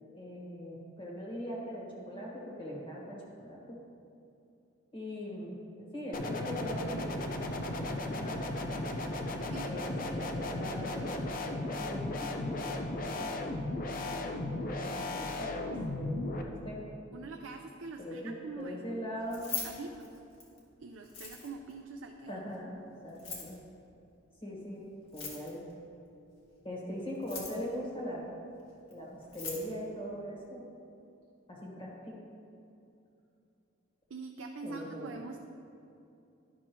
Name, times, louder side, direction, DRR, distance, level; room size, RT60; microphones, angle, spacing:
voice 1, 0.1-3.8 4.9-7.4 7.8-8.4 9.6-11.2 11.6-13.5 13.9-15.7 15.9-16.8 18.0-19.5 22.3-23.6 24.4-24.8 25.1-25.6 26.6-28.3 28.9-30.7 31.5-32.2 34.6-35.2, equal, 25° left, -4 dB, 1.5 m, -41 dB
sound 1, 6.1-16.4, left 2 dB, 45° left, 0.6 m, -35 dB
voice 2, 17.1-19.0 19.5-20.2 20.8-22.3 34.1-35.4, right 3 dB, 90° right, 3 dB, 0.5 m, -44 dB
Keys jangling, 19.2-20.6 21.0-21.7 23.1-23.6 25.0-25.7 27.1-27.7 28.9-29.0 29.2-29.7, left 5 dB, 80° left, 1.7 m, -40 dB
11.5 x 6.0 x 3.0 m, 2.7 s
head